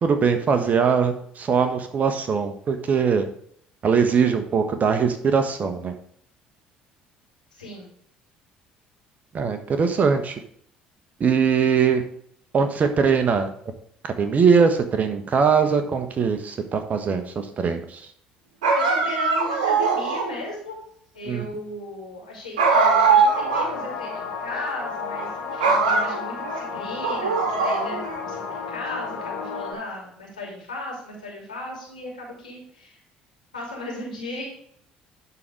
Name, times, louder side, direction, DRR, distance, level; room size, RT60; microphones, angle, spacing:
voice 1, 0.0-3.3 3.8-5.9 9.3-10.4 11.2-12.0 12.5-13.5 14.0-18.0 21.3-21.4, right 6 dB, 40° right, 6 dB, 1.3 m, -21 dB
voice 2, 7.5-7.9 18.7-20.8 21.1-33.0 33.5-34.5, left 1 dB, 90° left, -3 dB, 2.6 m, -36 dB
sound 1, 18.6-20.4 22.6-23.8 24.1-24.2 25.0-25.3 25.6-26.6 27.0-28.2, right 4 dB, 75° right, 1.3 m, -21 dB
sound 2, 23.3-29.7, left 5 dB, 65° left, 2.2 m, -33 dB
11.5 x 4.0 x 4.8 m, 0.64 s
figure-of-eight pair, 55°, 4 cm